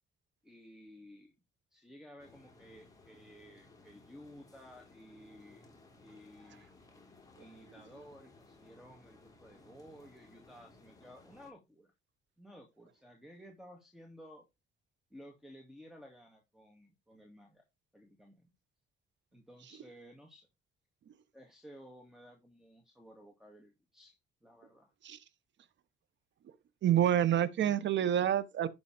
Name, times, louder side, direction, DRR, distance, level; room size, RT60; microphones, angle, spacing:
voice 1, 0.4-1.3 1.7-5.7 6.0-6.7 7.4-11.9 12.4-14.5 15.1-17.6 17.9-18.5 19.3-20.5 21.3-24.9, equal, ahead, 2.5 m, -55 dB
sound 1, 2.2-11.5, left 3 dB, 20° left, 3.2 m, -60 dB
voice 2, 26.8-28.7, right 10 dB, 65° right, 1.1 m, -28 dB
11.5 x 4.0 x 5.0 m
cardioid pair, 90°, 20 cm